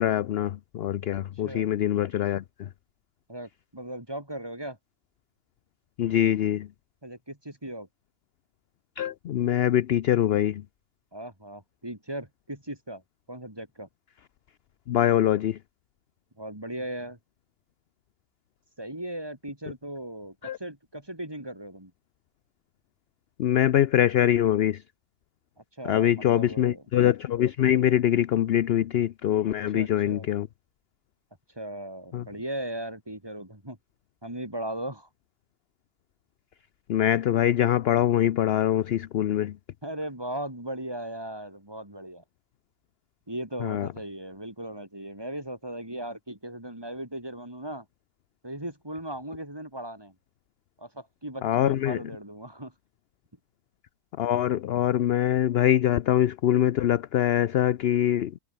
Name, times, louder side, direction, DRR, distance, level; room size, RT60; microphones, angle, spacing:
voice 1, 0.0-2.7 6.0-6.7 9.0-10.6 14.9-15.6 20.4-20.6 23.4-24.8 25.8-30.5 32.1-32.2 36.9-39.6 43.6-43.9 51.4-52.0 54.2-58.4, left 11 dB, 60° left, 0.7 m, -24 dB
voice 2, 1.1-1.7 3.3-4.8 7.0-7.9 11.1-13.0 13.3-13.9 16.4-17.2 18.8-21.9 25.6-26.8 29.7-30.3 31.5-33.8 34.2-35.1 39.8-42.2 43.3-47.9 48.4-50.1 50.8-52.7, right 1 dB, 15° right, 3.6 m, -37 dB
omnidirectional pair, 1.5 m